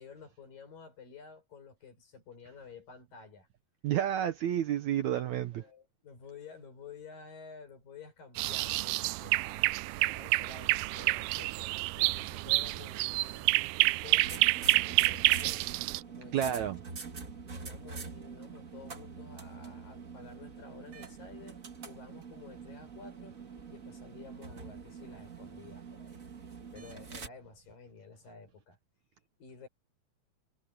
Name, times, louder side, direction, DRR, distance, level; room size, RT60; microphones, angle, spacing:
voice 1, 0.0-3.5 5.5-14.5 14.9-15.7 16.1-16.7 17.4-23.4 23.7-28.8 29.4-29.7, left 5 dB, 70° left, 8.4 m, -52 dB
voice 2, 3.8-5.6 16.3-16.8, right 10 dB, 70° right, 1.9 m, -30 dB
sound 1, 8.4-16.0, right 21 dB, 85° right, 2.4 m, -28 dB
sound 2, 14.2-27.3, right 5 dB, 35° right, 1.3 m, -45 dB
omnidirectional pair, 4.1 m